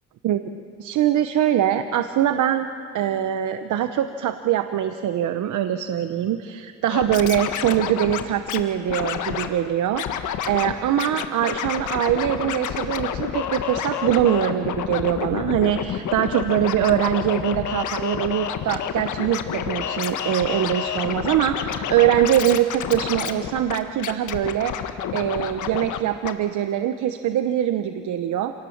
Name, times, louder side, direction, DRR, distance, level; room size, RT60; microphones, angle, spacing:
voice 1, 0.8-2.7 2.9-28.5, right 11 dB, 75° right, 9 dB, 0.9 m, -23 dB
Scratching (performance technique), 6.9-8.6 8.9-9.5 9.9-10.7 11.0-26.0 26.2-26.3, left 9 dB, 75° left, 1.5 m, -29 dB
27.0 x 18.5 x 7.3 m, 2.4 s
cardioid pair, 90°, 30 cm